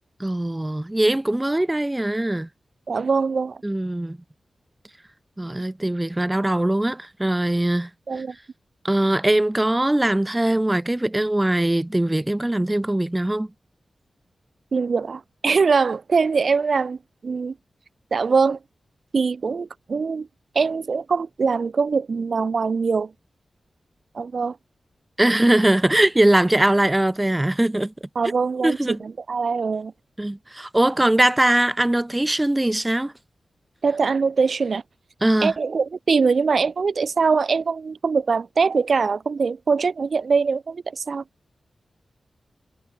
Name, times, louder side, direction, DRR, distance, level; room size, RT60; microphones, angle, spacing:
voice 1, 0.2-2.5 3.6-4.2 5.4-7.9 8.1-8.2 8.8-13.5 25.2-27.9 28.6-29.0 30.2-33.1 35.2-35.5, right 1 dB, 10° right, 4.6 m, -21 dB
voice 2, 2.9-3.6 8.1-8.4 14.7-17.0 17.2-17.5 18.1-18.6 19.1-20.3 20.5-23.1 24.1-24.6 28.2-29.9 33.8-34.8 35.4-41.2, right 5 dB, 50° right, 7.4 m, -22 dB
wide cardioid pair, 175°, 0 cm